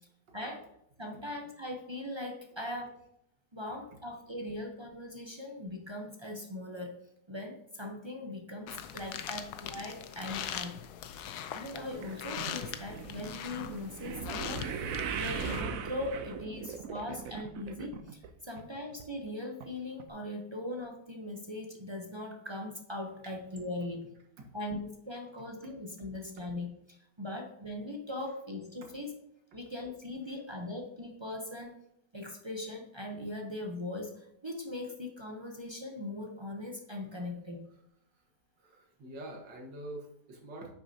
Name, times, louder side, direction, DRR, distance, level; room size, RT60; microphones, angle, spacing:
voice 1, 1.0-3.0 3.5-6.9 7.3-10.8 11.2-11.3 11.5-14.6 15.2-24.0 24.5-29.1 29.5-31.8 32.1-37.6, left 1 dB, 35° right, 1 dB, 0.4 m, -40 dB
sound 1, 8.7-15.6, left 9 dB, 70° left, 1.1 m, -41 dB
sound 2, 11.9-18.3 18.6-19.0 19.6-19.7 20.0-20.1, right 6 dB, 65° right, 0.9 m, -39 dB
voice 2, 38.6-40.7, right 1 dB, 90° right, 1 dB, 2.1 m, -46 dB
9.7 x 6.1 x 2.8 m, 0.76 s
omnidirectional pair, 1.9 m